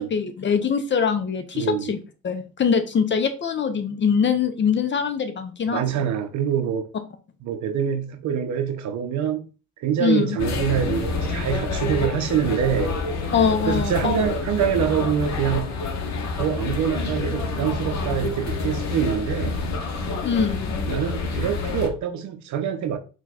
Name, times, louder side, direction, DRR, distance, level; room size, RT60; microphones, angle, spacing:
voice 1, 0.0-2.0 2.2-5.8 10.0-10.4 13.3-14.2 20.2-20.7, left 6 dB, 30° left, 0.6 m, -23 dB
voice 2, 1.5-1.9 5.7-6.9 7.4-9.5 9.8-13.0 13.7-15.7 16.4-19.6 20.9-23.0, right 8 dB, 45° right, 0.7 m, -25 dB
sound 1, 10.4-21.9, left 3 dB, 45° left, 0.9 m, -28 dB
4.0 x 2.4 x 4.1 m
figure-of-eight pair, 50°, 40 cm